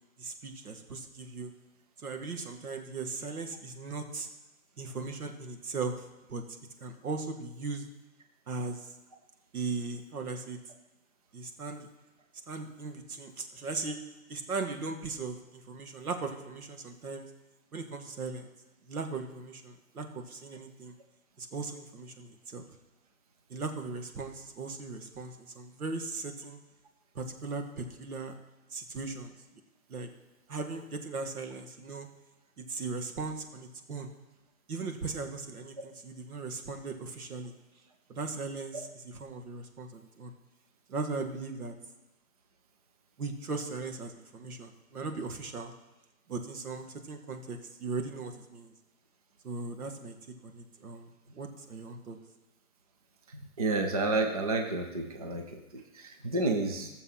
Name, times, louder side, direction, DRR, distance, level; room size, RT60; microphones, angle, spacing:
voice 1, 0.2-1.5 2.0-4.3 4.8-6.4 6.8-7.9 8.5-8.9 9.5-10.6 11.3-11.9 12.5-14.0 14.3-17.3 17.7-18.5 18.8-21.0 21.4-22.7 23.5-26.6 27.2-28.3 28.7-29.3 29.9-30.1 30.5-32.1 32.6-34.1 34.7-37.5 38.1-40.3 40.9-41.7 43.2-45.7 46.3-48.7 49.4-50.2 50.4-52.2, right 3 dB, 90° right, 5 dB, 1.9 m, -38 dB
voice 2, 53.3-56.9, right 2 dB, 25° right, 4 dB, 0.6 m, -31 dB
15.5 x 6.9 x 5.7 m, 1.0 s
hypercardioid pair, 175°, 43 cm